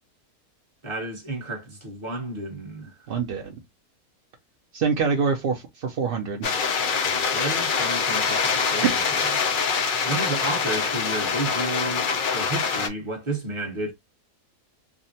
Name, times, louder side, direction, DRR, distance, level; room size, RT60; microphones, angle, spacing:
voice 1, 0.8-3.1 7.0-9.2 10.0-13.9, right 2 dB, 25° right, 0.8 m, -32 dB
voice 2, 3.1-3.6 4.7-6.5, right 5 dB, 70° right, 0.5 m, -25 dB
sound 1, 6.4-12.9, left 5 dB, 70° left, 0.4 m, -24 dB
3.5 x 2.1 x 2.6 m
omnidirectional pair, 1.6 m